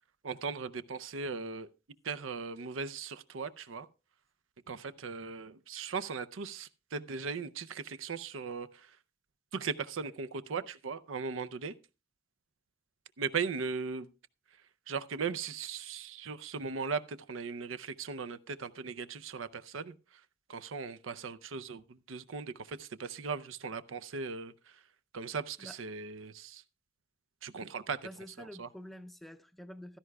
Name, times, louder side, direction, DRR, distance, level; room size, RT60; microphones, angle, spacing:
voice 1, 0.2-1.7 2.0-3.9 4.7-8.9 9.5-11.7 13.2-14.1 14.9-19.9 20.5-24.5 25.1-26.6 27.4-28.0 28.4-28.7, right 5 dB, 80° right, 0.6 m, -38 dB
voice 2, 28.0-30.0, equal, ahead, 0.5 m, -48 dB
15.5 x 12.5 x 2.3 m
head